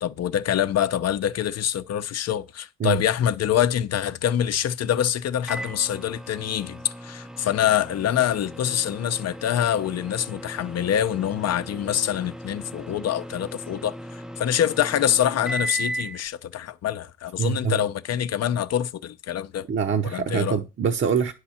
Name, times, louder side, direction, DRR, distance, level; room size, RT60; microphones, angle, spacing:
voice 1, 0.0-14.0 14.4-19.7 20.0-20.6, left 10 dB, 55° left, 0.7 m, -25 dB
Microwave oven, 5.5-16.2, right 1 dB, ahead, 0.5 m, -37 dB
voice 2, 17.4-17.8 19.7-21.3, right 7 dB, 40° right, 0.8 m, -24 dB
9.7 x 6.6 x 4.3 m
cardioid pair, 90°, 30 cm